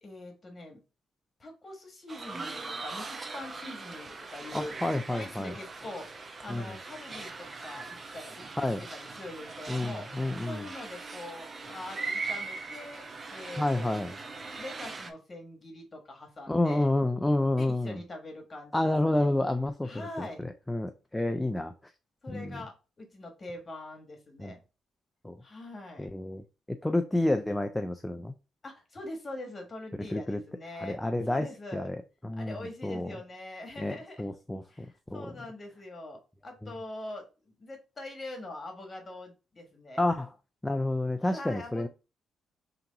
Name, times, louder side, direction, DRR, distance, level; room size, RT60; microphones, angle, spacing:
voice 1, 0.0-0.8 1.4-4.8 5.1-8.5 8.8-10.1 10.4-14.0 14.3-16.9 17.6-19.3 19.8-20.5 22.2-24.6 25.4-26.1 28.6-32.0 32.4-34.3 34.7-37.3 37.6-40.0 41.2-41.9, left 2 dB, 30° left, 1.3 m, -43 dB
sound 1, 2.1-15.1, right 3 dB, 35° right, 0.6 m, -40 dB
voice 2, 4.5-5.5 6.5-6.6 8.6-8.8 9.7-10.6 13.6-14.1 16.5-18.0 18.7-20.3 20.7-21.7 22.3-22.6 24.4-24.5 25.2-25.4 26.0-26.4 26.8-28.3 30.1-30.4 30.8-31.5 31.7-32.0 32.2-33.1 33.8-34.6 35.1-35.3 40.0-40.3 40.6-41.9, left 1 dB, 10° left, 0.3 m, -29 dB
3.4 x 3.0 x 3.9 m
cardioid pair, 90°, 0 cm